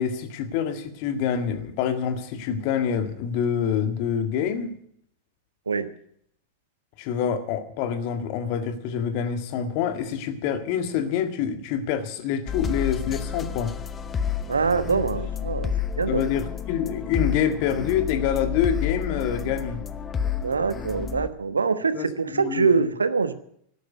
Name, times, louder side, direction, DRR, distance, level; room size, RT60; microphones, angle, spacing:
voice 1, 0.0-4.8 7.0-13.7 16.1-19.8 21.9-22.9, left 8 dB, 45° left, 9 dB, 1.8 m, -26 dB
sound 1, 12.5-21.3, left 7 dB, 20° left, 1.0 m, -30 dB
voice 2, 14.5-15.7 16.0-16.3 20.4-23.3, right 5 dB, 75° right, 13 dB, 1.1 m, -24 dB
13.5 x 10.5 x 9.2 m, 0.67 s
figure-of-eight pair, 90°, 0 cm